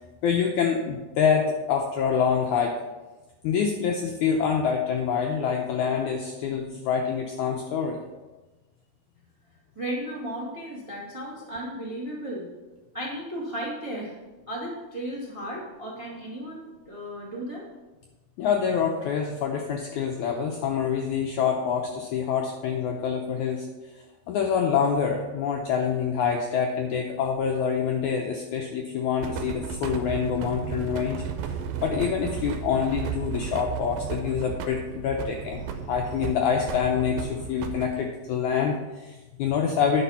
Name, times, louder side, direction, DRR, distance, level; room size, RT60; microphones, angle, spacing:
voice 1, 0.2-2.7 3.4-8.0 18.4-23.9 24.3-31.6 31.8-35.6 35.9-40.0, left 7 dB, 85° left, 1 dB, 1.7 m, -26 dB
voice 2, 9.7-12.5 12.9-14.2 14.5-17.6, right 1 dB, 60° right, -4 dB, 0.3 m, -35 dB
sound 1, 29.2-37.9, right 7 dB, 80° right, 2.5 m, -34 dB
10.0 x 5.1 x 5.6 m, 1.1 s
omnidirectional pair, 4.3 m